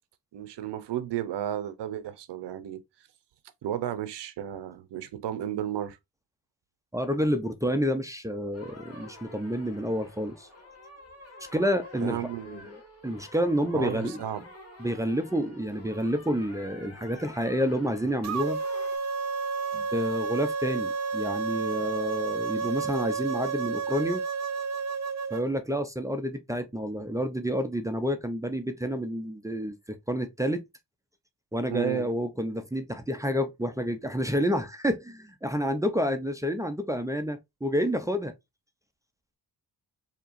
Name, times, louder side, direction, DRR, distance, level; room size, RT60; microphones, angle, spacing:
voice 1, 0.3-2.8 3.6-6.0 12.0-12.7 13.7-14.4 31.7-32.1, right 11 dB, 80° right, 0.8 m, -33 dB
voice 2, 6.9-10.5 11.5-14.2 14.8-18.6 19.7-24.2 25.3-30.6 31.5-38.3, equal, 10° right, 0.5 m, -29 dB
sound 1, 8.5-19.0, left 1 dB, 35° left, 1.9 m, -48 dB
sound 2, 18.2-25.4, right 5 dB, 40° right, 0.8 m, -31 dB
4.6 x 2.9 x 2.5 m
cardioid pair, 100°, 41 cm